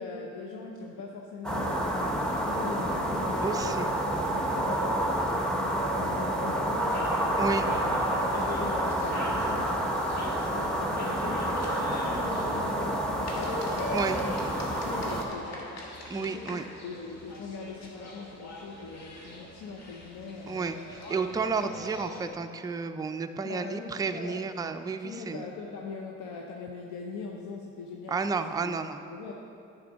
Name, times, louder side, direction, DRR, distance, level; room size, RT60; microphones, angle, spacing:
voice 1, 0.0-2.0 2.4-7.5 8.2-10.1 10.5-14.4 14.7-15.8 16.2-20.7 23.4-24.5 24.9-28.8 29.1-29.3, left 4 dB, 80° left, 0 dB, 0.7 m, -40 dB
sound 1, 1.4-15.2, right 1 dB, ahead, 1.0 m, -29 dB
voice 2, 3.4-3.9 7.4-7.6 13.9-14.2 16.1-16.6 20.5-25.4 28.1-29.0, right 4 dB, 15° right, 7 dB, 0.3 m, -31 dB
sound 2, 6.9-22.3, left 1 dB, 60° left, 1.4 m, -43 dB
9.3 x 6.0 x 4.0 m, 2.7 s
cardioid pair, 90°, 30 cm